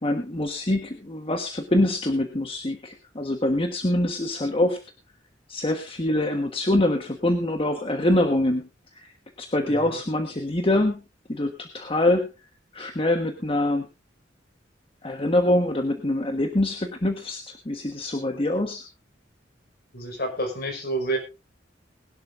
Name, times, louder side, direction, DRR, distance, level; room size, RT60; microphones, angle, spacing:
voice 1, 0.0-4.8 5.5-8.6 8.9-9.1 9.4-11.0 11.3-12.3 12.7-13.9 15.0-18.8, left 1 dB, 30° left, 5 dB, 1.4 m, -24 dB
voice 2, 9.7-10.0 19.9-21.2, right 2 dB, 55° left, 3 dB, 5.1 m, -29 dB
20.5 x 11.5 x 2.6 m, 0.28 s
head